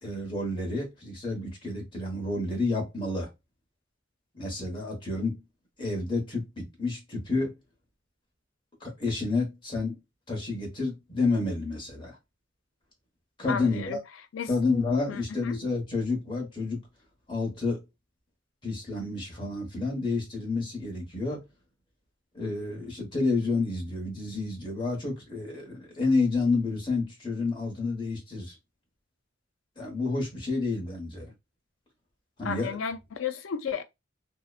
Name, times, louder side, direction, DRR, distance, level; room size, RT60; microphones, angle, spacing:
voice 1, 0.0-3.3 4.3-5.4 5.8-7.5 8.8-10.0 10.3-12.2 13.4-14.0 14.5-16.8 17.3-17.8 18.6-21.4 22.3-28.6 29.8-31.3 32.4-32.8, left 3 dB, 25° left, 1.1 m, -29 dB
voice 2, 13.5-14.0 14.3-14.5 15.1-15.6 32.4-33.8, left 7 dB, 90° left, 0.4 m, -33 dB
2.8 x 2.1 x 2.3 m
head